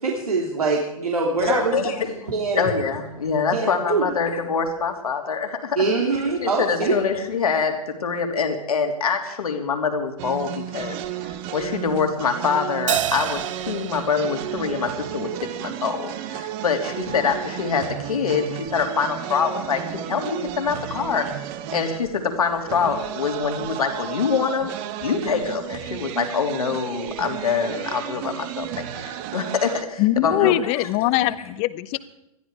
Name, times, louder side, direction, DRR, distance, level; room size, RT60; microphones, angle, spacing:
voice 1, 0.0-1.8 2.0-2.7 3.5-4.1 5.8-7.0, right 4 dB, 90° right, -2 dB, 3.0 m, -24 dB
voice 2, 1.3-2.0 2.5-5.8 6.4-7.7 8.0-11.0 11.5-15.3 15.6-21.2 21.7-24.7 25.0-30.8, left 5 dB, 80° left, 4 dB, 3.1 m, -25 dB
sound 1, 10.2-29.8, right 11 dB, 40° right, 1.2 m, -33 dB
Crash cymbal, 12.9-15.6, right 11 dB, 60° right, 1.0 m, -29 dB
voice 3, 30.0-32.0, left 15 dB, 35° left, 15 dB, 0.9 m, -22 dB
21.0 x 13.5 x 4.9 m, 0.88 s
hypercardioid pair, 120°, 18 cm